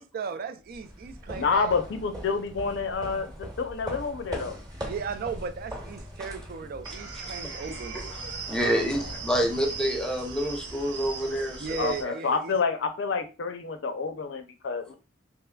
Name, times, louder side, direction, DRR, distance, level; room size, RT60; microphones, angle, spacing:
voice 1, 0.0-1.7 4.8-8.1 11.6-12.6, right 5 dB, 50° right, 0.4 m, -36 dB
sound 1, 0.7-10.3, equal, 20° right, 1.0 m, -41 dB
voice 2, 1.3-4.6 8.6-8.8 11.8-14.9, left 5 dB, 70° left, 0.5 m, -29 dB
sound 2, 6.8-12.0, right 4 dB, 90° right, 0.7 m, -39 dB
voice 3, 8.5-12.2, equal, 5° left, 0.7 m, -28 dB
3.5 x 3.0 x 2.2 m
head